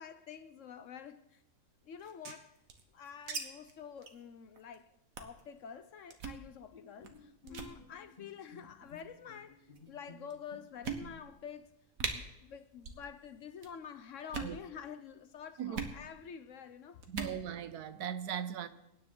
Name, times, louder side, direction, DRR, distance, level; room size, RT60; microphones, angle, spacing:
voice 1, 0.0-1.4 1.8-2.6 2.9-11.7 12.1-17.0, left 7 dB, 60° left, 0.9 m, -48 dB
sound 1, 2.0-3.4 3.7-3.8 4.0-4.2 4.6-4.7 5.1-5.4 6.1-6.4 7.0-7.2 7.5-7.7 8.6-9.0 9.8-9.9 10.3-10.4 10.8-11.4 11.7-11.8 12.0-12.1 12.8-13.1 13.3-13.7 14.2-14.6 15.7-16.0 17.0-17.4, right 5 dB, 60° right, 1.7 m, -40 dB
Bowed string instrument, 6.7-11.6, left 4 dB, 35° left, 1.4 m, -57 dB
voice 2, 15.6-15.9 17.1-18.7, right 9 dB, 80° right, 1.3 m, -39 dB
23.5 x 9.8 x 3.8 m
omnidirectional pair, 1.6 m